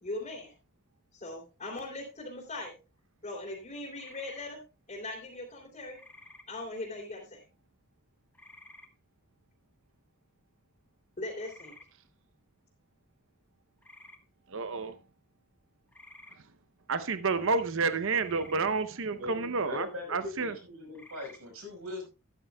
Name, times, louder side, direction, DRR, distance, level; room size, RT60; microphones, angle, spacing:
voice 1, 0.0-0.5 1.1-2.7 3.2-4.6 4.9-6.0 6.5-7.4 11.2-11.8, left 2 dB, 35° left, 3.0 m, -40 dB
sound 1, 4.0-4.5 6.0-6.4 8.3-8.9 11.4-11.9 13.8-14.2 15.9-16.4 18.2-18.6 20.9-21.4, left 1 dB, 10° left, 1.4 m, -52 dB
voice 2, 14.5-15.0 16.9-20.6, right 4 dB, 60° right, 0.8 m, -30 dB
voice 3, 19.1-20.0 20.4-22.1, left 1 dB, 80° right, 5.2 m, -41 dB
12.5 x 12.5 x 2.3 m
head